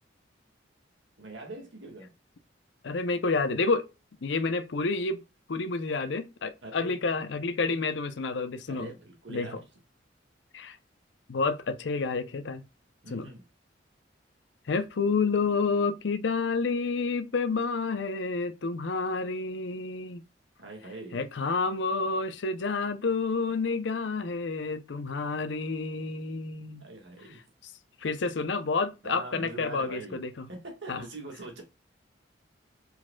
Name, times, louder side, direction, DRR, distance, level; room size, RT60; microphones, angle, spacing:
voice 1, 1.2-2.1 6.6-6.9 8.7-9.6 13.0-13.4 20.6-21.3 26.8-27.4 29.0-31.6, right 2 dB, 75° right, 1.7 m, -43 dB
voice 2, 2.8-3.9 4.2-5.2 5.5-8.9 9.3-9.5 10.5-10.8 11.3-12.6 13.1-13.3 14.7-20.2 21.1-26.8 28.0-30.5 30.9-31.0, left 4 dB, 70° left, 0.6 m, -29 dB
4.9 x 4.0 x 2.2 m
head